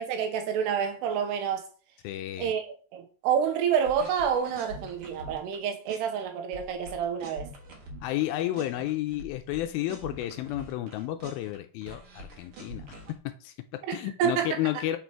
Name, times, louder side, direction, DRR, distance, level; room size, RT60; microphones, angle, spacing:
voice 1, 0.0-1.7 2.4-7.5 13.9-14.5, right 8 dB, 90° right, 3.1 m, -28 dB
voice 2, 2.0-2.5 8.0-15.0, left 14 dB, 80° left, 2.2 m, -32 dB
sound 1, 3.9-5.6 5.9-6.2 6.5-8.2 8.5-11.6 11.8-13.2, right 1 dB, 60° right, 1.4 m, -45 dB
6.9 x 4.3 x 4.5 m
omnidirectional pair, 4.7 m